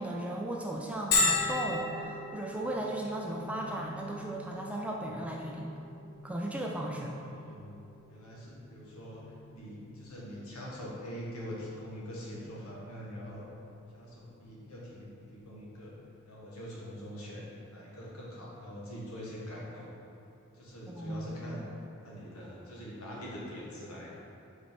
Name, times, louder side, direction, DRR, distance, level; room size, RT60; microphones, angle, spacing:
voice 1, 0.0-5.8 6.2-7.1 20.9-21.3, right 1 dB, 5° right, -1 dB, 0.3 m, -36 dB
Bell, 1.1-16.5, left 3 dB, 45° left, 0.7 m, -38 dB
voice 2, 7.1-9.3 9.5-13.5 13.9-15.9 16.2-20.0 20.5-21.6 22.0-24.1, equal, 75° left, -5 dB, 1.4 m, -44 dB
5.0 x 4.3 x 5.2 m, 2.7 s
head